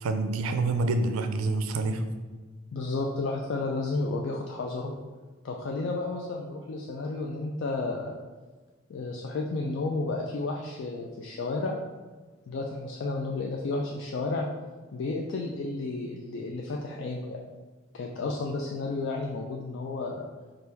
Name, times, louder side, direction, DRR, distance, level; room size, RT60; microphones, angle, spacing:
voice 1, 0.0-2.0, right 2 dB, 85° right, 8 dB, 0.4 m, -27 dB
voice 2, 2.7-4.9 5.4-8.1 8.9-11.8 12.5-14.5 14.9-17.5 17.9-20.3, left 3 dB, 60° left, 0 dB, 0.3 m, -32 dB
3.4 x 2.5 x 4.4 m, 1.3 s
head